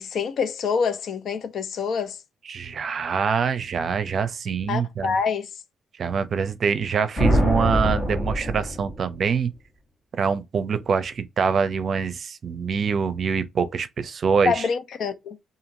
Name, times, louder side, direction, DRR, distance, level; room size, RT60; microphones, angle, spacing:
voice 1, 0.0-2.2 4.7-5.5 14.4-15.4, left 5 dB, 65° left, 0.6 m, -26 dB
voice 2, 2.5-5.1 6.0-9.5 10.2-14.7, right 6 dB, 50° right, 0.6 m, -25 dB
sound 1, 7.2-9.3, equal, 30° left, 1.6 m, -23 dB
2.9 x 2.6 x 2.5 m
cardioid pair, 100°, 0 cm